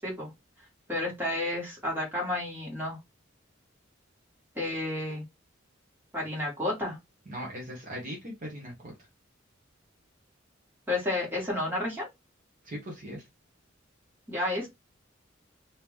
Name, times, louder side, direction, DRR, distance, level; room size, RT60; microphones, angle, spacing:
voice 1, 0.9-3.0 4.6-5.2 6.1-7.0 10.9-12.1 14.3-14.7, left 1 dB, 10° right, 1.9 m, -31 dB
voice 2, 7.3-8.9 12.6-13.2, equal, 40° right, 1.0 m, -39 dB
3.5 x 2.8 x 3.0 m
head